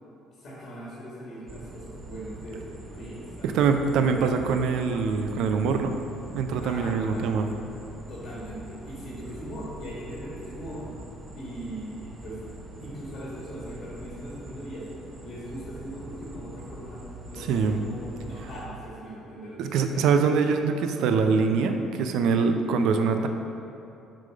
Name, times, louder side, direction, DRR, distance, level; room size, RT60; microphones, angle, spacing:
voice 1, 0.3-3.6 3.9-4.2 6.6-7.3 8.1-10.9 11.4-12.4 12.8-14.9 15.2-20.1, equal, 50° left, -6 dB, 1.4 m, -40 dB
sound 1, 1.5-18.7, right 2 dB, 35° right, 0.7 m, -43 dB
voice 2, 3.4-6.0 6.3-7.5 17.5-17.8 19.6-23.3, right 5 dB, 65° right, 6 dB, 0.4 m, -24 dB
4.8 x 3.8 x 5.1 m, 2.7 s
hypercardioid pair, 55°, 0 cm